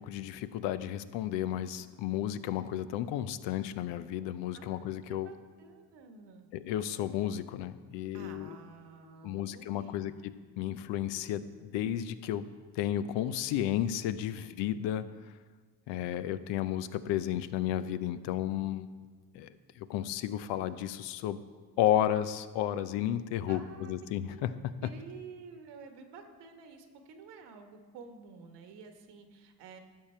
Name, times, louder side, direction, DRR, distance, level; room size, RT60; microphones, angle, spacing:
voice 1, 0.0-5.3 6.5-8.5 9.2-12.5 12.7-15.0 15.9-18.9 19.3-21.4 21.8-24.9, left 11 dB, 80° left, 13 dB, 0.7 m, -33 dB
voice 2, 4.5-4.8 5.1-6.5 8.1-10.1 23.5-23.9 24.3-24.4 24.8-29.8, right 5 dB, 70° right, 6 dB, 1.3 m, -50 dB
12.0 x 7.5 x 4.4 m, 1.4 s
supercardioid pair, 65°, 43 cm